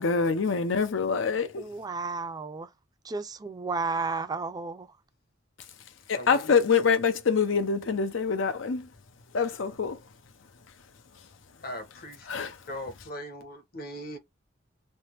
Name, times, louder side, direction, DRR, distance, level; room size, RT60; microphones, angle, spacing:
voice 1, 0.0-1.6 6.1-8.9 9.3-10.0 12.3-12.5, left 5 dB, 90° left, 0.6 m, -25 dB
voice 2, 1.6-2.7 3.1-4.9, right 4 dB, 20° right, 0.4 m, -32 dB
voice 3, 6.1-6.5 11.6-12.3 12.7-14.2, equal, 50° left, 1.0 m, -39 dB
3.3 x 2.1 x 2.9 m
head